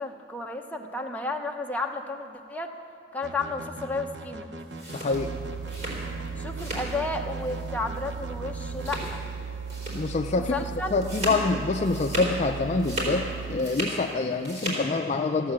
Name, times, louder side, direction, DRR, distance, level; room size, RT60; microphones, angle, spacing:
voice 1, 0.0-2.7 3.1-4.5 6.4-9.2 10.3-10.9, left 3 dB, 10° left, 2 dB, 0.8 m, -32 dB
sound 1, 3.2-9.1, right 2 dB, 70° right, 0.9 m, -41 dB
sound 2, 4.6-7.0 7.3-7.7 7.9-8.1 8.7-9.3 9.7-10.1 10.4-12.4 12.7-14.0 14.3-14.9, equal, 40° right, 3.8 m, -35 dB
voice 2, 4.9-5.3 9.9-15.5, left 3 dB, 40° left, 5 dB, 0.4 m, -26 dB
sound 3, 5.1-13.8, right 6 dB, 90° right, 0.3 m, -37 dB
14.5 x 8.6 x 7.3 m, 2.4 s
head